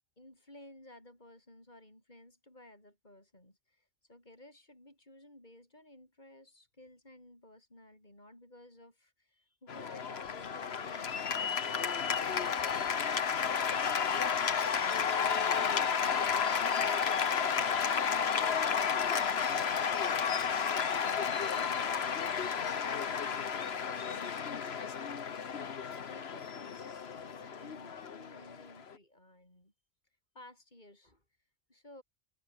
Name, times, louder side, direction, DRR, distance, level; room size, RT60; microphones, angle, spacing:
voice 1, 0.2-11.2 12.0-12.3 12.7-13.1 21.2-29.7 30.3-31.2 31.7-32.0, left 1 dB, 35° left, 8.0 m, -56 dB
Cheering / Applause, 9.7-28.9, left 6 dB, 50° left, 1.3 m, -32 dB
omnidirectional pair, 1.4 m